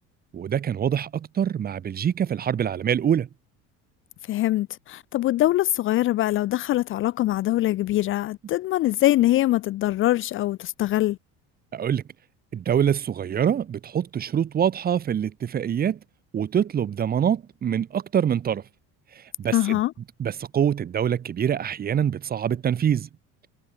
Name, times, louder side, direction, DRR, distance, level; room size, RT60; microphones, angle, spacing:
voice 1, 0.3-3.3 11.7-12.0 12.5-16.0 16.3-18.6 19.4-19.8 20.2-23.1, right 9 dB, 25° right, 2.4 m, -25 dB
voice 2, 4.3-11.2 19.5-19.9, left 15 dB, 40° left, 0.7 m, -23 dB
cardioid pair, 165°, 33 cm